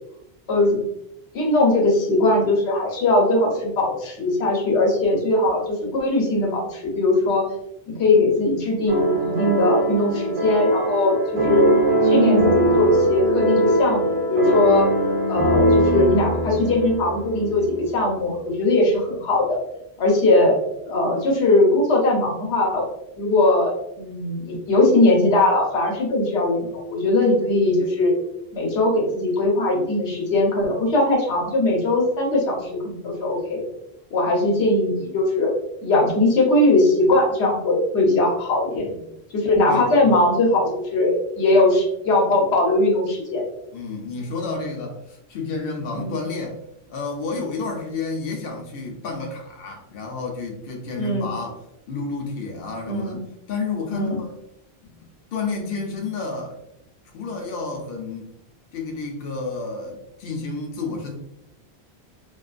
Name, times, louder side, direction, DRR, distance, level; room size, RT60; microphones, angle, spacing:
voice 1, 0.5-0.8 1.3-7.4 7.9-11.7 12.0-14.9 15.3-19.6 20.0-20.5 20.9-22.8 23.2-28.1 28.5-33.6 34.1-35.5 35.8-38.9 39.3-43.4 46.0-46.2 51.0-51.3 52.9-53.2 53.9-54.2, left 2 dB, 85° left, -1 dB, 1.0 m, -20 dB
sound 1, 8.9-17.9, right 1 dB, 45° right, 0.4 m, -21 dB
voice 2, 38.7-39.0 39.7-40.2 43.7-46.6 46.9-51.6 51.9-53.2 53.5-54.3 54.8-54.9 55.3-56.6 57.1-58.3 58.7-61.1, left 3 dB, 65° left, 1 dB, 0.7 m, -30 dB
2.5 x 2.2 x 2.4 m, 0.79 s
omnidirectional pair, 1.1 m